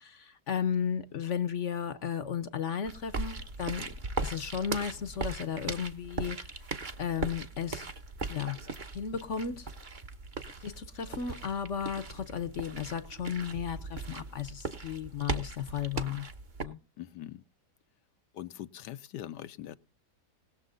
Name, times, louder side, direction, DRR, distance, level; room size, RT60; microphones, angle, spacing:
voice 1, 0.3-3.9 4.2-6.5 7.0-7.9 8.3-8.6 8.9-9.7 10.6-16.3 16.6-16.8, left 7 dB, 55° left, 1.0 m, -34 dB
sound 1, 2.8-16.6, right 3 dB, 35° right, 1.0 m, -39 dB
voice 2, 17.0-17.4 18.3-19.8, left 12 dB, 85° left, 1.4 m, -42 dB
20.0 x 7.1 x 3.8 m
omnidirectional pair, 1.8 m